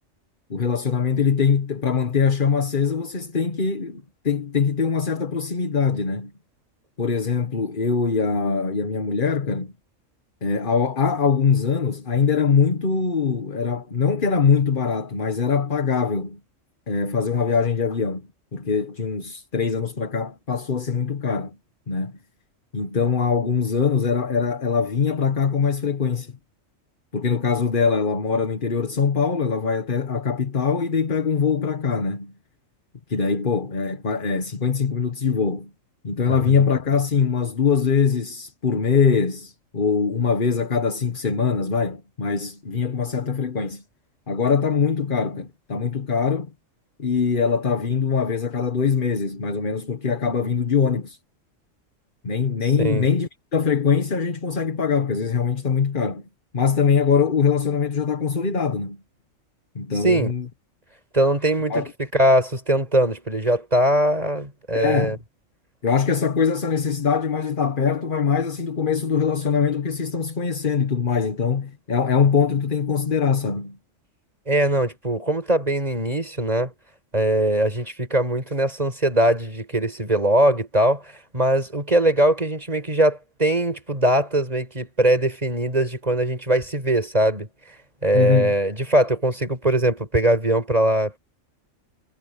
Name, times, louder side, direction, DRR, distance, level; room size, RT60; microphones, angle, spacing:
voice 1, 0.5-6.3 7.0-9.7 10.4-16.4 16.9-18.2 18.5-21.6 21.9-22.2 22.7-26.3 27.1-32.3 33.1-35.7 36.0-43.8 44.3-46.5 47.0-51.2 52.2-56.2 56.5-59.0 59.7-60.5 61.7-61.9 64.7-65.2 65.8-73.8 88.1-88.5, left 6 dB, 40° left, 1.5 m, -22 dB
voice 2, 61.1-61.8 62.1-65.2 74.5-76.7 77.1-87.5 88.0-91.2, right 1 dB, 30° right, 5.1 m, -21 dB
omnidirectional pair, 1.3 m